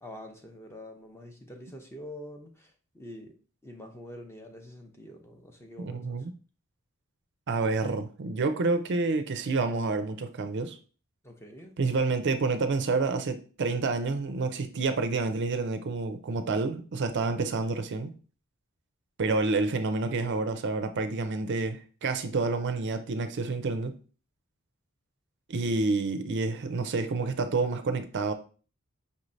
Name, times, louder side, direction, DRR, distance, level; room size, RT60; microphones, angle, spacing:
voice 1, 0.0-2.5 2.9-3.3 3.6-6.2 11.2-11.7, left 1 dB, 10° left, 0.6 m, -45 dB
voice 2, 5.8-6.3 7.5-10.8 11.8-18.1 19.2-23.9 25.5-28.3, right 3 dB, 50° right, 0.4 m, -28 dB
5.4 x 3.1 x 2.6 m
head